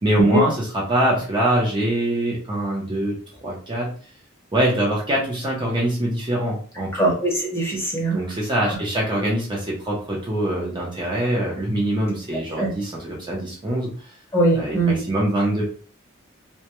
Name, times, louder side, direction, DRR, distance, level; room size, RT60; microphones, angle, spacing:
voice 1, 0.0-3.9 4.5-6.9 8.1-13.9 14.6-15.6, right 1 dB, 25° right, -4 dB, 0.6 m, -23 dB
voice 2, 6.9-8.2 12.6-12.7 14.3-15.0, right 2 dB, 10° left, -3 dB, 0.7 m, -21 dB
2.2 x 2.1 x 2.9 m, 0.43 s
head